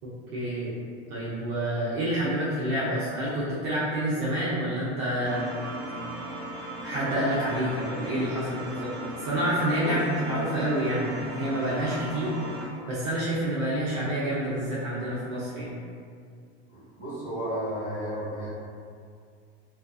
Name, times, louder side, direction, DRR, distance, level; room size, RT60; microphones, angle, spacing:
voice 1, 0.3-0.7 1.1-5.5 6.8-8.9 9.2-12.3 12.9-15.7, right 1 dB, 35° right, -9 dB, 0.4 m, -28 dB
sound 1, 5.2-12.7, right 1 dB, 65° left, 0.9 m, -37 dB
voice 2, 16.7-18.5, right 1 dB, 30° left, -12 dB, 1.2 m, -33 dB
2.4 x 2.3 x 2.4 m, 2.2 s
supercardioid pair, 155°, 32 cm